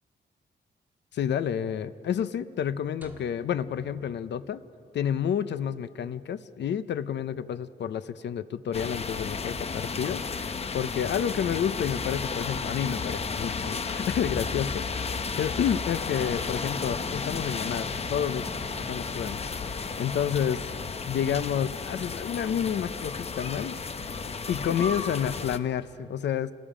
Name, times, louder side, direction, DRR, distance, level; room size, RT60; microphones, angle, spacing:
voice 1, 1.1-4.6 4.9-18.5 18.9-19.4 20.0-20.6 21.1-23.8 24.5-26.5, left 8 dB, 75° left, 14 dB, 0.7 m, -30 dB
sound 1, 3.0-5.3, right 2 dB, 10° right, 1.9 m, -53 dB
sound 2, 8.7-25.6, left 5 dB, 35° left, 0.8 m, -33 dB
Bowed string instrument, 16.2-21.2, right 1 dB, 15° left, 5.1 m, -47 dB
29.0 x 19.0 x 5.0 m, 2.4 s
wide cardioid pair, 130°, 18 cm